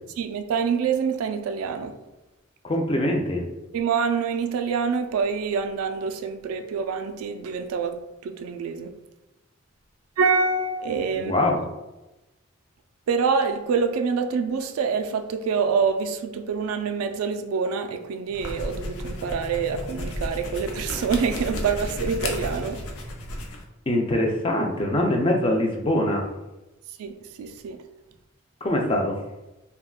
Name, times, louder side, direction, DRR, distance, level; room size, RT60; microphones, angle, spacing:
voice 1, 0.2-2.0 3.7-9.0 10.2-11.3 13.1-22.8 27.0-27.8, right 5 dB, 85° right, 0.3 m, -26 dB
voice 2, 2.6-3.4 11.1-11.6 23.9-26.3 28.6-29.1, left 1 dB, 25° left, 0.3 m, -23 dB
sound 1, 18.3-23.6, left 1 dB, 85° left, 0.5 m, -33 dB
3.4 x 2.2 x 2.3 m
head